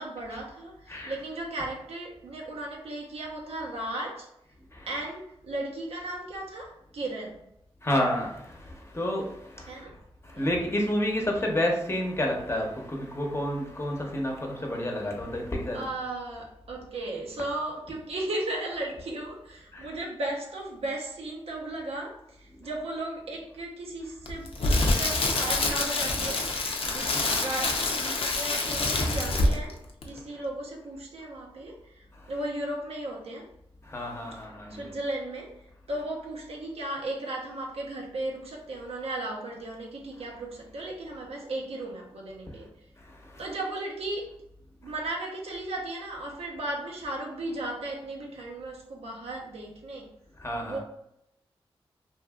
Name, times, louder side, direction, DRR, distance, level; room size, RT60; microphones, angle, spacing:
voice 1, 0.0-4.3 4.9-7.5 9.7-10.0 10.3-10.6 15.7-29.8 30.0-33.5 34.7-35.6 35.9-42.7 43.4-44.3 44.8-50.1 50.6-50.8, right 1 dB, 80° right, 0.7 m, -36 dB
voice 2, 7.8-9.8 10.2-15.8 19.7-19.9 26.8-27.0 33.9-34.9 43.2-43.4 50.4-50.8, left 1 dB, 25° left, 0.8 m, -30 dB
Crackle, 24.3-29.7 30.0-30.2, left 2 dB, 65° left, 0.5 m, -26 dB
2.6 x 2.6 x 2.3 m
cardioid pair, 45°, 10 cm